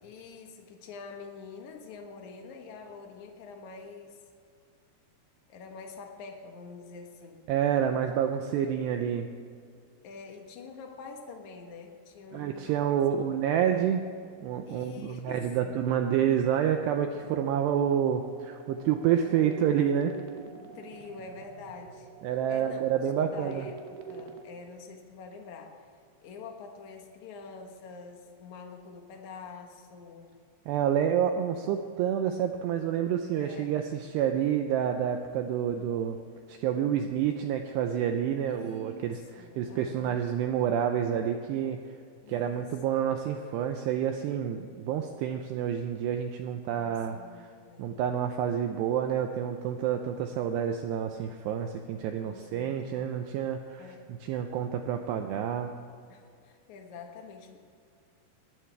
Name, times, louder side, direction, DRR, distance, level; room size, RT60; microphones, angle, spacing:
voice 1, 0.0-4.2 5.5-7.4 10.0-13.3 14.6-15.8 19.0-19.5 20.6-22.1 22.5-22.8 23.2-25.9 26.2-30.3 33.4-33.7 38.5-40.2 42.2-42.6 46.6-47.9 52.2-53.1 53.8-54.1 56.1-57.7, left 4 dB, 80° left, 3 dB, 1.7 m, -46 dB
voice 2, 7.5-9.3 12.3-14.0 14.4-20.1 22.2-23.7 30.7-36.2 36.5-41.8 42.3-47.5 47.8-55.7, right 9 dB, 85° right, 5 dB, 2.4 m, -28 dB
sound 1, 16.4-24.4, right 6 dB, 70° right, 2.9 m, -47 dB
22.5 x 13.5 x 3.5 m, 2.3 s
omnidirectional pair, 5.6 m